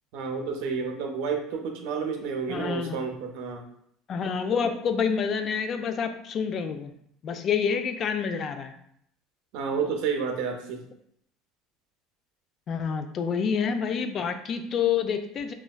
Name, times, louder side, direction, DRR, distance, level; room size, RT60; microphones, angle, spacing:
voice 1, 0.1-3.6 9.5-10.8, right 5 dB, 75° right, 3 dB, 0.5 m, -30 dB
voice 2, 2.5-3.0 4.1-6.9 7.2-8.7 12.7-15.5, left 6 dB, 45° left, 8 dB, 0.3 m, -28 dB
3.2 x 2.2 x 2.2 m, 0.71 s
supercardioid pair, 100°, 0 cm